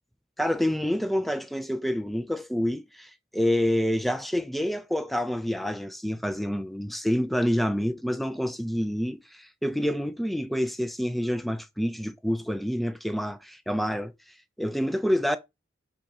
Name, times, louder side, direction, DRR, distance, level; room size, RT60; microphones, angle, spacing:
voice 1, 0.4-14.1 14.6-15.4, equal, ahead, 0.4 m, -27 dB
5.4 x 2.3 x 4.1 m
head